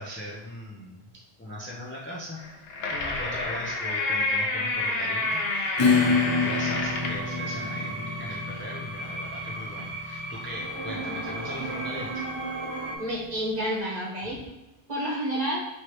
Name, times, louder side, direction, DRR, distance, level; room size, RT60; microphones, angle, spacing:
voice 1, 0.0-2.4 2.8-12.3 14.2-14.3, equal, 15° left, -5 dB, 0.6 m, -39 dB
sound 1, 2.4-7.3, left 2 dB, 75° left, 0.9 m, -29 dB
sound 2, 4.7-13.0, right 2 dB, 85° right, 1.1 m, -36 dB
Acoustic guitar / Strum, 5.8-13.0, left 4 dB, 50° left, 0.3 m, -29 dB
voice 2, 13.0-14.4 14.9-15.6, equal, 40° right, -5 dB, 1.4 m, -29 dB
4.5 x 3.3 x 3.1 m, 1.0 s
omnidirectional pair, 1.0 m